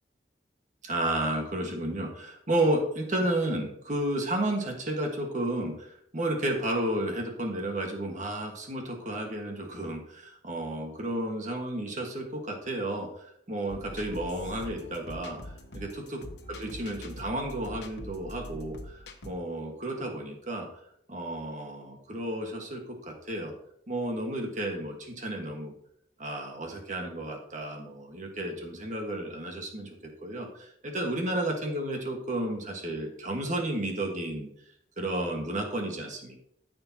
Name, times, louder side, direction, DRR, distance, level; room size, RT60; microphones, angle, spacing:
voice 1, 0.8-13.1 13.5-15.4 15.7-16.2 16.5-20.7 21.1-23.5 23.9-25.7 26.2-29.9 30.2-34.5 35.0-36.4, right 1 dB, 45° right, 2 dB, 1.6 m, -32 dB
sound 1, 13.7-19.3, left 1 dB, 65° left, 1.1 m, -43 dB
13.5 x 6.8 x 2.9 m, 0.71 s
head